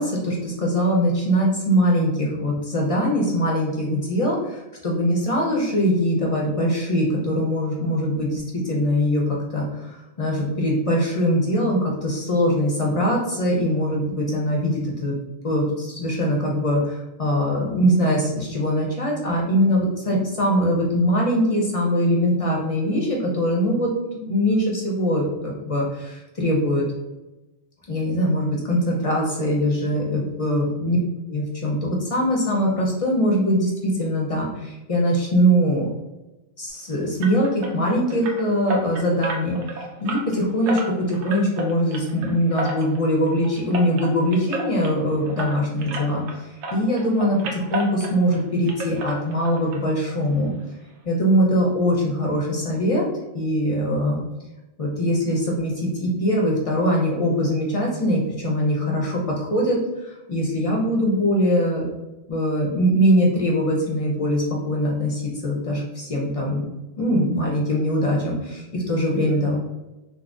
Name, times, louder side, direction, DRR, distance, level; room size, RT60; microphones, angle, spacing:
voice 1, 0.0-15.1 15.4-26.8 27.9-31.0 31.3-35.9 36.6-50.5 51.1-53.0 53.3-54.2 54.8-61.8 62.3-66.7 67.0-69.6, equal, 45° left, -3 dB, 0.5 m, -22 dB
sound 1, 37.2-46.4 46.6-48.4 48.7-49.8 50.0-50.2 50.6-50.7 51.0-51.1, right 1 dB, 85° right, 0.9 m, -32 dB
3.6 x 2.0 x 2.4 m, 1.0 s
omnidirectional pair, 1.2 m